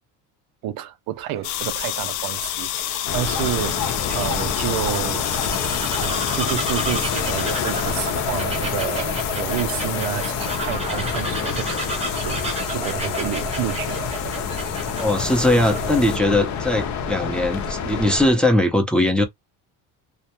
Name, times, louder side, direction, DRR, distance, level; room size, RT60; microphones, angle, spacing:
voice 1, 0.6-5.3 6.0-14.1, right 13 dB, 65° right, 0.5 m, -30 dB
Bird vocalization bird call bird song, 1.2-16.2, right 2 dB, 15° right, 0.9 m, -32 dB
sound 1, 1.4-16.2, left 13 dB, 90° left, 0.5 m, -31 dB
sound 2, 3.0-18.3, left 6 dB, 50° left, 0.7 m, -28 dB
voice 2, 15.0-19.2, left 1 dB, 5° left, 0.6 m, -20 dB
2.2 x 2.1 x 2.9 m
cardioid pair, 115°, 38 cm